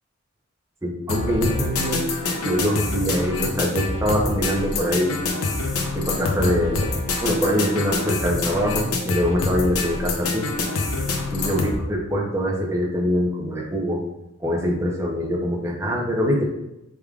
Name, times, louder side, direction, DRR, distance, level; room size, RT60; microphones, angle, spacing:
voice 1, 0.8-2.0 2.3-5.1 5.9-6.9 7.2-10.5 11.3-14.0 14.4-16.5, equal, 15° right, -3 dB, 0.7 m, -24 dB
sound 1, 1.1-11.8, left 3 dB, 90° left, 0.6 m, -26 dB
4.9 x 3.6 x 2.4 m, 0.90 s
head